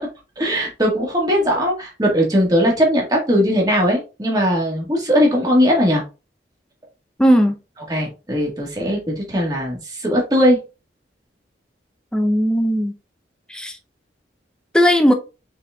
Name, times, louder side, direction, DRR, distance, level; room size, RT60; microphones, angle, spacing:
voice 1, 0.4-6.0 7.9-10.6, equal, 20° right, 1.5 m, -19 dB
voice 2, 7.2-7.5 12.1-12.9 13.5-13.8 14.7-15.1, equal, 5° left, 0.5 m, -16 dB
5.5 x 3.9 x 2.3 m
head